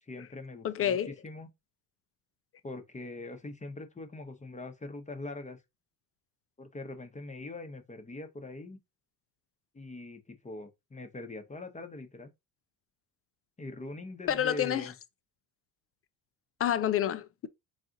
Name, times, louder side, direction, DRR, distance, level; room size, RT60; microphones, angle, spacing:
voice 1, 0.0-1.5 2.6-5.6 6.6-8.8 9.7-12.3 13.6-15.0, left 2 dB, 15° left, 0.9 m, -42 dB
voice 2, 0.6-1.1 14.3-14.9 16.6-17.5, left 10 dB, 30° left, 0.4 m, -28 dB
4.2 x 2.4 x 3.8 m
supercardioid pair, 80°, 49 cm